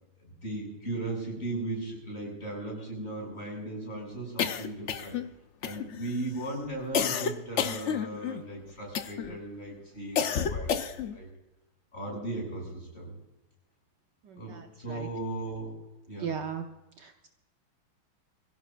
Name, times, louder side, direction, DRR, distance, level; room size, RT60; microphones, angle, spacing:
voice 1, 0.2-5.2 5.6-11.3 11.9-13.1 14.3-15.8 16.1-16.3, right 2 dB, 30° left, -2 dB, 6.9 m, -37 dB
sound 1, 4.4-5.3 5.6-6.1 6.9-8.4 8.9-9.4 10.2-11.2, left 7 dB, 85° left, 0.6 m, -30 dB
voice 2, 14.3-15.1 16.2-16.6 17.0-17.3, right 7 dB, 65° right, 4 dB, 1.4 m, -37 dB
24.0 x 16.0 x 2.5 m, 1.0 s
omnidirectional pair, 2.2 m